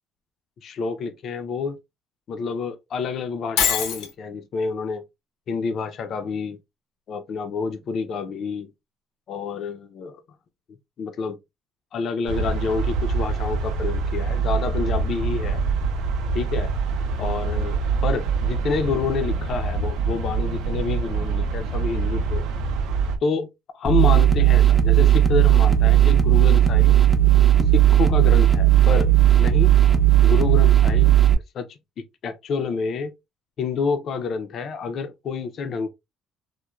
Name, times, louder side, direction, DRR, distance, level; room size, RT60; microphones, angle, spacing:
voice 1, 0.6-1.8 2.3-5.0 5.5-6.6 7.1-8.7 9.3-10.2 11.0-11.4 11.9-15.6 16.3-16.7 17.2-22.5 23.2-23.5 23.7-27.0 27.7-29.1 29.4-29.7 30.2-31.2 31.5-31.8 32.2-33.1 33.6-35.9, left 5 dB, 55° left, 0.4 m, -28 dB
Shatter, 3.6-4.1, left 7 dB, 90° left, 0.7 m, -22 dB
sound 1, 12.3-23.2, right 4 dB, 80° right, 0.5 m, -25 dB
sound 2, 23.9-31.4, right 12 dB, 20° right, 0.5 m, -16 dB
3.1 x 2.1 x 2.3 m
cardioid pair, 115°, 0 cm